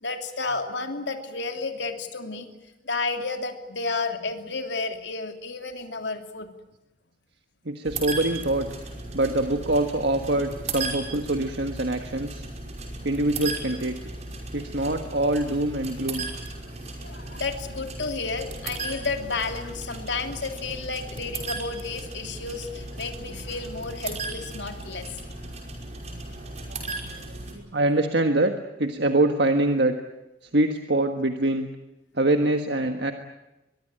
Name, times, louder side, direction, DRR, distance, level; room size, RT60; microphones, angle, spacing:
voice 1, 0.0-6.5 16.7-16.8 17.0-25.2, left 3 dB, 75° left, 5 dB, 2.9 m, -32 dB
voice 2, 7.6-8.7 9.1-12.5 13.0-14.1 14.5-16.3 26.1-28.5 28.8-30.0 30.5-31.7 32.1-33.1, right 2 dB, 65° right, 6 dB, 1.6 m, -25 dB
sound 1, 7.8-27.5, right 3 dB, 40° right, 5.5 m, -36 dB
23.0 x 23.0 x 8.9 m, 0.96 s
head